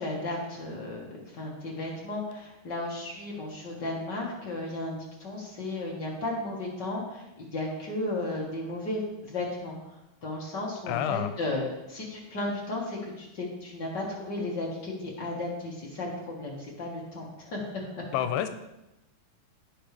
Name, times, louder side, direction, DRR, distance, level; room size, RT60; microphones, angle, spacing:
voice 1, 0.0-18.1, left 2 dB, 50° left, -3 dB, 1.2 m, -34 dB
voice 2, 10.9-11.3 18.1-18.5, left 10 dB, 85° left, 9 dB, 2.7 m, -28 dB
16.5 x 6.0 x 3.4 m, 0.94 s
omnidirectional pair, 4.6 m